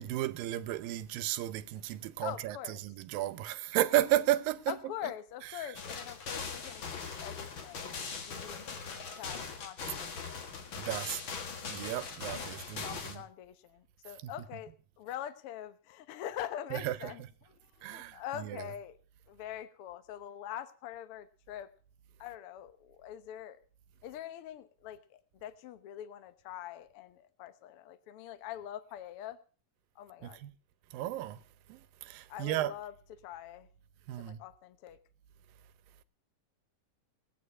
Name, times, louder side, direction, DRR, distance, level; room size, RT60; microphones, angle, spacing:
voice 1, 0.0-4.9 5.6-5.7 10.8-11.2 11.6-13.2 14.2-14.3 16.7-17.1 17.8-18.7 30.2-30.5 30.9-31.4 31.7-32.7 34.1-34.4, right 14 dB, 85° right, 2.5 m, -33 dB
voice 2, 2.2-2.8 4.7-7.9 8.3-8.8 9.2-10.5 10.8-11.2 12.3-12.5 12.8-17.2 17.8-19.0 19.3-21.7 22.2-23.6 24.0-29.4 30.0-30.4 32.3-32.9 33.2-33.7 34.2-35.0, left 11 dB, 90° left, 1.2 m, -44 dB
sound 1, 5.8-13.2, left 5 dB, 45° left, 1.8 m, -41 dB
18.5 x 9.2 x 5.3 m
omnidirectional pair, 4.0 m